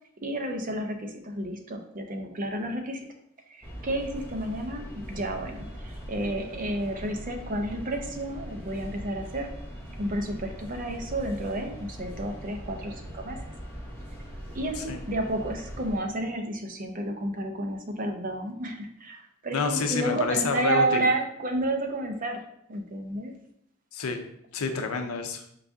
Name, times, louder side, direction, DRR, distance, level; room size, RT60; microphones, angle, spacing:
voice 1, 0.2-3.0 3.5-9.5 10.0-13.4 14.5-22.4 22.7-23.3, right 1 dB, 40° right, 4 dB, 0.6 m, -31 dB
sound 1, 3.6-16.0, equal, 10° left, 0.9 m, -41 dB
voice 2, 19.5-21.0 23.9-24.2 24.5-25.4, left 4 dB, 85° left, 6 dB, 0.6 m, -28 dB
4.7 x 2.6 x 3.5 m, 0.73 s
head